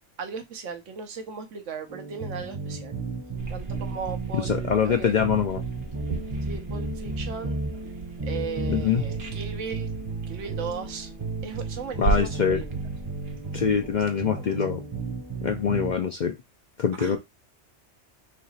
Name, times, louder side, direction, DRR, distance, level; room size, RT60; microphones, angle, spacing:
voice 1, 0.2-3.0 3.5-5.1 6.4-7.6 8.2-9.9 10.3-11.1 11.4-12.7 14.2-14.6 17.0-17.2, right 5 dB, 85° right, 1.2 m, -36 dB
sound 1, 1.9-15.9, right 3 dB, 30° right, 0.7 m, -34 dB
sound 2, 3.4-14.0, right 3 dB, 60° right, 1.0 m, -36 dB
voice 2, 4.3-5.6 8.7-9.0 12.0-12.6 13.5-14.8 15.4-16.4 16.8-17.2, left 7 dB, 60° left, 0.5 m, -24 dB
3.2 x 2.9 x 4.0 m
omnidirectional pair, 1.2 m